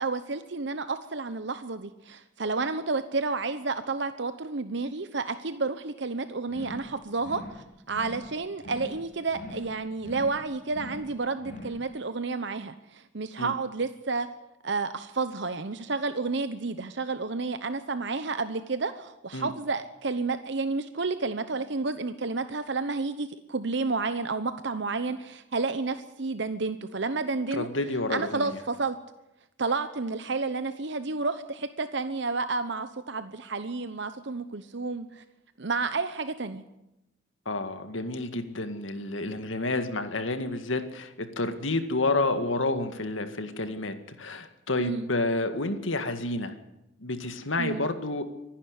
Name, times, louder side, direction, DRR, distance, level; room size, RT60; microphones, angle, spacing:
voice 1, 0.0-14.3 14.6-27.7 28.1-29.0 29.6-35.2 35.6-36.6 44.8-45.1 47.6-47.9, right 3 dB, 65° right, 11 dB, 1.0 m, -31 dB
sound 1, 6.5-6.9 7.2-7.6 7.9-8.3 8.6-9.0 9.3-9.7 10.0-10.4 10.7-11.1 11.4-11.8, left 1 dB, 40° left, 5.6 m, -42 dB
voice 2, 27.5-28.5 37.5-46.5 47.0-48.2, left 2 dB, 85° left, 8 dB, 2.0 m, -29 dB
24.5 x 11.5 x 9.8 m, 0.90 s
head